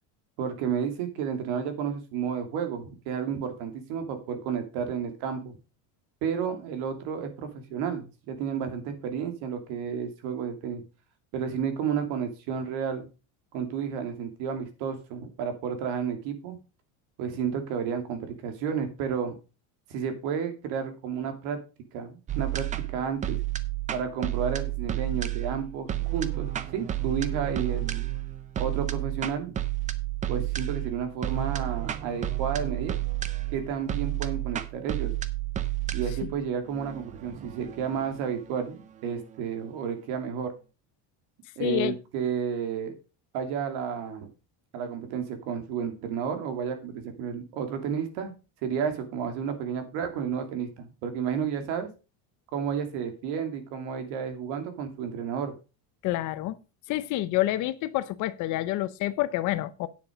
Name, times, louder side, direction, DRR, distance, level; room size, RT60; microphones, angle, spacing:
voice 1, 0.4-5.5 6.2-10.8 11.3-13.1 13.5-16.6 17.2-19.4 19.9-21.6 21.9-23.4 23.9-28.1 28.6-29.5 30.3-32.9 33.5-35.1 35.9-40.5 41.6-42.9 43.3-44.3 44.7-48.3 48.6-51.9 52.5-55.5, right 7 dB, 70° right, 2.7 m, -31 dB
sound 1, 22.3-39.4, right 14 dB, 20° right, 0.4 m, -31 dB
voice 2, 41.6-42.0 56.0-56.6 56.9-59.9, left 15 dB, 45° left, 0.7 m, -28 dB
9.5 x 7.0 x 5.1 m
cardioid pair, 170°, 41 cm